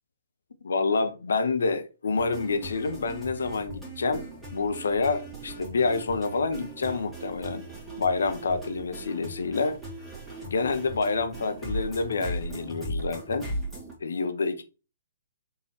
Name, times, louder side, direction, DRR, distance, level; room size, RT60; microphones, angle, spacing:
voice 1, 0.6-7.6 8.0-9.8 10.4-13.5 14.0-14.6, left 4 dB, 70° left, 0.7 m, -28 dB
sound 1, 2.2-13.9, right 1 dB, 5° right, 1.9 m, -38 dB
4.6 x 3.3 x 3.0 m
figure-of-eight pair, 125°, 0 cm